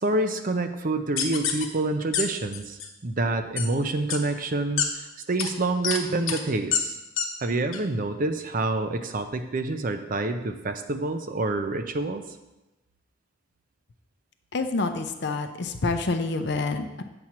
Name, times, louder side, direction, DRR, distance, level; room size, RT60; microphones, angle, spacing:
voice 1, 0.0-7.0 7.4-12.2, right 2 dB, 40° right, 8 dB, 0.5 m, -27 dB
sound 1, 1.2-1.6 2.1-2.2 2.5-2.9 3.6-3.7 4.1-4.2 4.8-4.9 5.4-5.5 5.8-6.0 6.3-6.4 6.7-6.8 7.2-7.3 7.7-7.8, left 8 dB, 75° left, 0.9 m, -26 dB
voice 2, 14.5-17.0, left 3 dB, 55° left, 7 dB, 0.6 m, -27 dB
7.8 x 4.4 x 6.0 m, 1.0 s
head